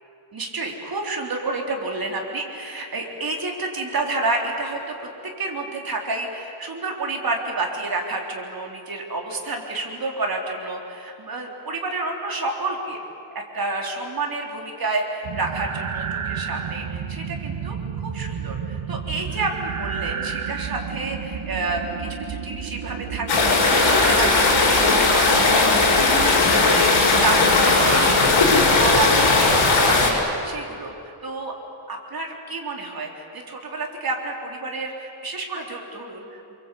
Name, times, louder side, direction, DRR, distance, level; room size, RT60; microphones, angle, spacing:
voice 1, 0.3-5.1 5.4-13.0 13.5-17.8 18.0-25.7 26.0-31.5 31.9-36.4, right 3 dB, 45° right, 1 dB, 3.8 m, -29 dB
sound 1, 15.2-30.1, right 7 dB, 85° right, 1.9 m, -31 dB
sound 2, 23.3-30.1, left 3 dB, 60° left, 6.1 m, -17 dB
28.0 x 23.5 x 8.4 m, 2.7 s
wide cardioid pair, 140°, 49 cm